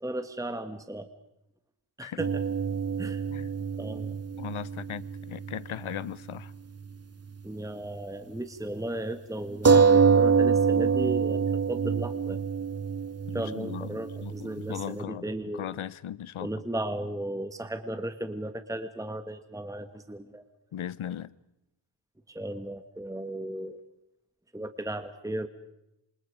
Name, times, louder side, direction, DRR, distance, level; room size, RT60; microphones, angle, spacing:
voice 1, 0.0-1.1 2.0-2.4 3.0-3.2 3.8-4.2 7.4-12.4 13.3-15.7 16.4-20.4 22.3-23.8 24.5-25.5, right 1 dB, 5° right, 1.6 m, -35 dB
sound 1, 2.2-6.1 6.3-6.4 9.6-14.9, right 5 dB, 30° right, 1.0 m, -25 dB
voice 2, 4.4-6.5 13.3-15.3 15.5-16.5 20.7-21.3, left 10 dB, 85° left, 0.9 m, -38 dB
27.5 x 26.0 x 5.0 m
cardioid pair, 75°, 48 cm